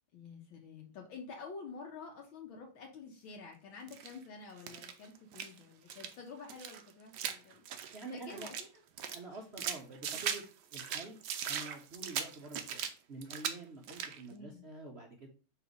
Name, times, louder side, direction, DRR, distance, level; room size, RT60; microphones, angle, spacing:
voice 1, 0.1-7.7 8.1-8.7 14.3-14.7, left 4 dB, 70° left, 1 dB, 1.7 m, -49 dB
sound 1, 3.9-4.2 4.6-5.6 5.9-6.1 6.5-8.7 9.0-10.5 10.7-12.9 13.2-13.6 13.8-14.2, right 8 dB, 70° right, 1.0 m, -39 dB
voice 2, 7.9-8.5 9.1-10.4 10.7-11.2 11.5-15.3, right 3 dB, 55° right, 1 dB, 0.7 m, -47 dB
5.7 x 3.3 x 5.1 m, 0.35 s
omnidirectional pair, 2.4 m